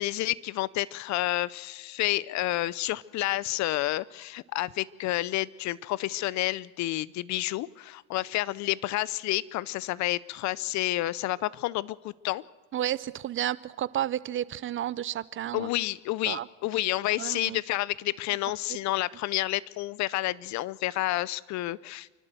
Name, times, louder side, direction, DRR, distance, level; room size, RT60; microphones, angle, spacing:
voice 1, 0.0-12.4 15.5-22.1, left 17 dB, 45° left, 22 dB, 0.7 m, -30 dB
voice 2, 12.7-15.7 16.3-16.5 17.2-17.6, right 11 dB, 30° right, 19 dB, 0.7 m, -31 dB
28.5 x 12.0 x 7.7 m, 1.3 s
supercardioid pair, 110°, 38 cm